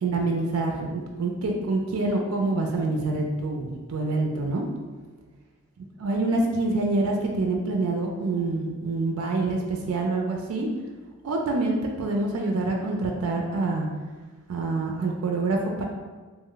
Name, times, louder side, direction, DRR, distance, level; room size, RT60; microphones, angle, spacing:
voice 1, 0.0-4.7 6.0-10.7 11.2-13.9 14.5-15.8, right 2 dB, 90° right, 1 dB, 0.4 m, -26 dB
2.9 x 2.1 x 3.7 m, 1.3 s
head